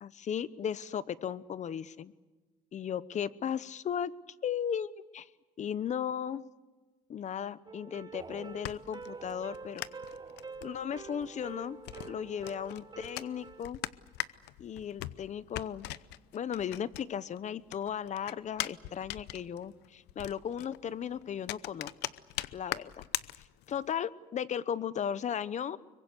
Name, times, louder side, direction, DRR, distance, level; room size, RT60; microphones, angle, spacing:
voice 1, 0.0-2.1 2.7-4.1 4.4-5.3 5.6-6.4 7.1-9.8 10.6-11.8 12.1-13.8 14.6-15.9 16.3-21.9 22.5-23.0 23.7-25.8, left 8 dB, 45° left, 17 dB, 1.0 m, -36 dB
sound 1, 7.7-13.7, right 4 dB, 25° right, 1.1 m, -46 dB
sound 2, 8.2-17.4 17.7-23.9, left 16 dB, 90° left, 0.8 m, -41 dB
25.5 x 23.0 x 8.2 m, 1.2 s
cardioid pair, 110°, 17 cm